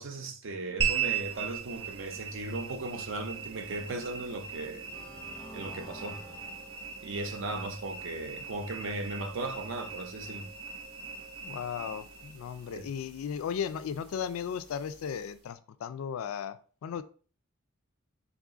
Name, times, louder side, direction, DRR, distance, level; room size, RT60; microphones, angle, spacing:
voice 1, 0.0-4.8 5.5-6.2 7.0-10.5 12.7-12.9, right 2 dB, 65° right, 0.5 m, -37 dB
sound 1, 0.8-15.4, right 7 dB, 85° right, 0.9 m, -39 dB
sound 2, 4.7-7.5, equal, 5° left, 0.4 m, -50 dB
voice 2, 11.4-17.0, left 7 dB, 85° left, 0.3 m, -36 dB
3.8 x 2.4 x 3.7 m
head